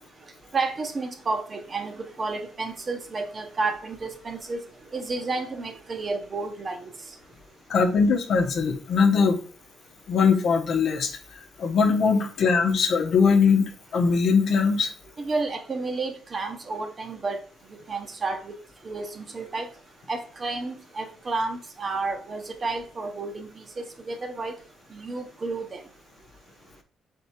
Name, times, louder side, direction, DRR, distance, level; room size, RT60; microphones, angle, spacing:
voice 1, 0.5-4.6 4.9-6.9 15.2-17.4 17.9-18.5 18.8-19.7 20.1-24.6 24.9-25.8, right 3 dB, 35° right, 5 dB, 0.9 m, -31 dB
voice 2, 7.7-9.4 10.1-14.9, left 5 dB, 65° left, 5 dB, 0.8 m, -21 dB
3.6 x 3.4 x 4.3 m, 0.39 s
cardioid pair, 90°, 0 cm